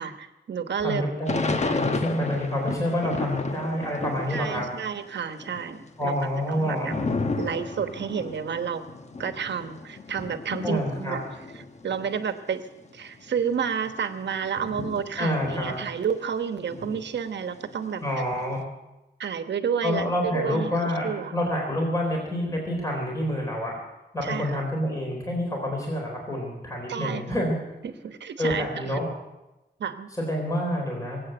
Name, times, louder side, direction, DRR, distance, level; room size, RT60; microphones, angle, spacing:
voice 1, 0.0-1.0 4.3-6.1 6.5-7.0 7.4-8.8 9.2-11.2 11.5-12.7 12.9-18.0 19.2-21.4 24.2-24.6 26.9-27.2 27.8-29.0 29.8-30.1, right 7 dB, 90° right, 9 dB, 1.1 m, -30 dB
voice 2, 0.8-4.6 6.0-6.9 10.6-11.2 15.2-15.7 18.0-18.6 19.8-23.8 24.1-27.6 28.4-29.1 30.2-31.2, equal, 20° left, -1 dB, 3.8 m, -27 dB
Thunder / Rain, 1.3-4.9 5.2-12.3 12.9-13.0 13.1-16.3 16.7-18.4, left 3 dB, 40° left, 1.1 m, -33 dB
22.0 x 8.5 x 7.8 m, 1.0 s
wide cardioid pair, 125°, 18 cm